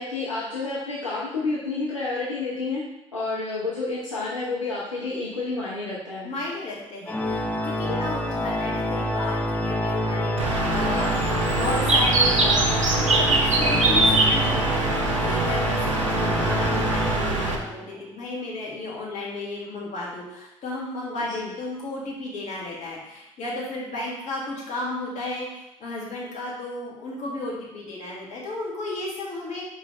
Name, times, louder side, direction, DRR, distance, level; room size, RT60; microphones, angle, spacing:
voice 1, 0.0-2.8 3.1-6.3 7.8-8.0 21.2-21.5, left 3 dB, 85° left, -6 dB, 0.9 m, -30 dB
voice 2, 6.2-11.2 11.5-29.7, left 2 dB, 50° left, -5 dB, 2.3 m, -33 dB
Organ, 7.1-17.9, left 1 dB, 10° left, 0.7 m, -27 dB
Bird, 10.4-17.6, right 3 dB, 85° right, 0.7 m, -23 dB
6.1 x 4.9 x 3.2 m, 0.88 s
figure-of-eight pair, 50°, 16 cm